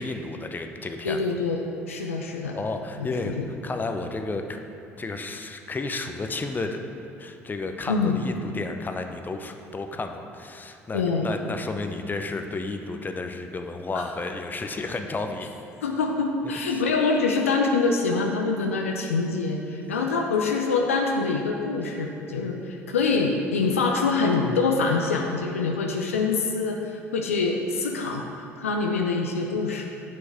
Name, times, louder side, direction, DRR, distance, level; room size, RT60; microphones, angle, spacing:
voice 1, 0.0-1.2 2.5-3.4 3.6-4.6 5.0-6.8 7.2-15.5 16.7-16.8, left 3 dB, 25° left, 6 dB, 0.7 m, -32 dB
voice 2, 1.0-1.6 1.9-2.6 3.0-3.4 7.9-8.2 10.9-11.3 13.9-14.0 15.8-29.8, left 4 dB, 90° left, 1 dB, 0.5 m, -25 dB
7.4 x 6.3 x 4.9 m, 2.5 s
hypercardioid pair, 60°, 7 cm